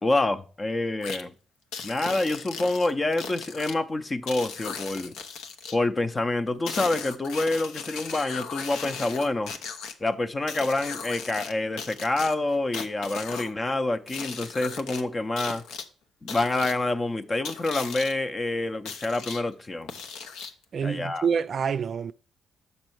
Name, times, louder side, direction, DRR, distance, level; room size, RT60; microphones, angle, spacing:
voice 1, 0.0-1.3 1.8-5.1 5.7-9.5 10.0-15.6 16.2-19.9 20.8-21.3, left 2 dB, 25° left, 0.6 m, -27 dB
sound 1, 1.0-1.2 1.7-3.7 4.3-5.8 6.7-9.9 10.5-11.5 11.8-13.5 14.1-15.0 15.4-15.8 16.3-16.7 17.4-18.1 18.9-19.4 19.9-20.6, left 6 dB, 85° left, 0.8 m, -37 dB
voice 2, 20.7-22.1, right 6 dB, 50° right, 0.3 m, -27 dB
6.7 x 5.4 x 4.5 m
cardioid pair, 90°, 0 cm